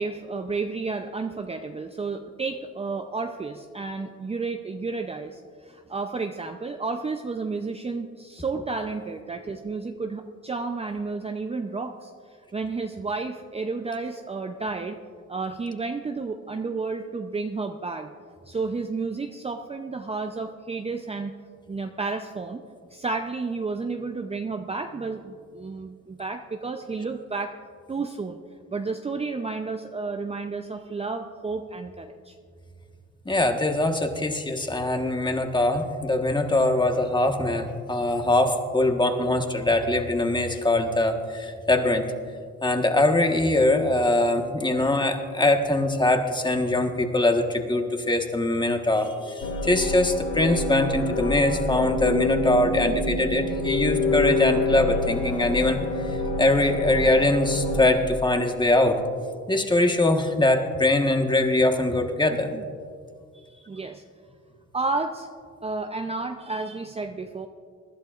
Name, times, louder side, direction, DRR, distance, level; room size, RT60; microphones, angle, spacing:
voice 1, 0.0-15.0 15.3-21.3 21.7-22.6 22.9-27.5 27.9-28.4 28.7-32.4 62.5-62.6 63.3-64.0 64.7-65.3 65.6-67.5, right 4 dB, 20° right, 5 dB, 0.6 m, -31 dB
voice 2, 33.2-42.1 42.6-55.8 56.4-59.0 59.5-62.5, left 2 dB, 15° left, 4 dB, 1.4 m, -22 dB
sound 1, 49.4-57.9, left 2 dB, 90° left, 1.5 m, -27 dB
23.5 x 11.5 x 2.5 m, 2.1 s
cardioid pair, 90°, 30 cm